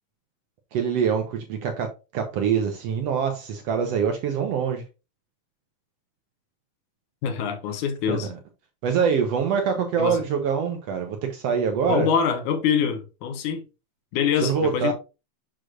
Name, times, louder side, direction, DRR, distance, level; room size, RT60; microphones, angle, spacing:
voice 1, 0.7-4.8 8.1-8.4 8.8-12.1 14.4-14.9, right 7 dB, 70° right, 1.7 m, -24 dB
voice 2, 7.2-8.3 10.0-10.2 11.8-13.6 14.1-14.9, left 7 dB, 85° left, 2.5 m, -25 dB
6.4 x 6.2 x 2.4 m
omnidirectional pair, 3.4 m